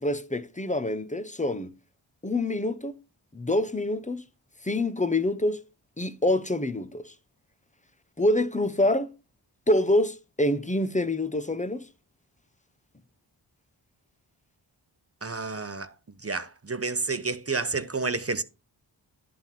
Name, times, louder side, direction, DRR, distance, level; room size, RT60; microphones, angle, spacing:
voice 1, 0.0-1.7 2.2-3.0 3.3-4.2 4.6-5.6 6.0-7.1 8.2-9.1 9.7-11.8, left 1 dB, 15° left, 0.9 m, -26 dB
voice 2, 15.2-15.9 16.2-18.4, right 4 dB, 30° right, 0.9 m, -30 dB
11.0 x 3.8 x 5.8 m
cardioid pair, 50°, 48 cm